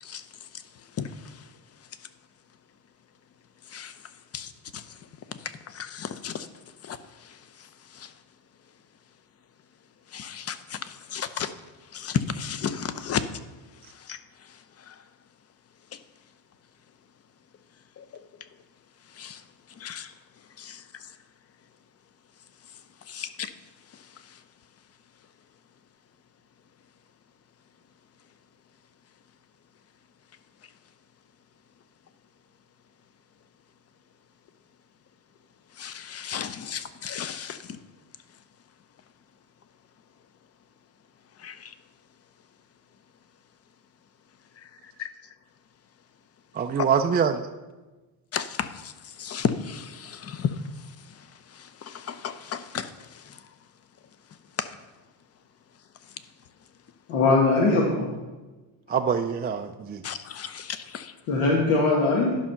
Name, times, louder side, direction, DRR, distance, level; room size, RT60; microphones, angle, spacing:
voice 1, 0.0-1.5 3.6-6.5 6.8-8.1 10.1-11.5 11.8-13.3 13.7-15.0 15.9-16.0 18.0-18.5 19.1-20.1 20.6-21.2 23.0-23.5 23.9-24.4 35.7-37.8 41.4-41.7 44.6-45.1 46.8-46.9 48.3-53.4 54.6-54.7 56.1-56.2 60.0-61.1, left 7 dB, 30° left, 13 dB, 0.7 m, -35 dB
voice 2, 46.5-47.5 58.9-60.0, right 6 dB, 25° right, 5 dB, 0.4 m, -25 dB
voice 3, 57.1-58.1 61.3-62.4, left 3 dB, 80° left, -2 dB, 1.9 m, -21 dB
11.5 x 5.5 x 5.8 m, 1.2 s
cardioid pair, 120°, 46 cm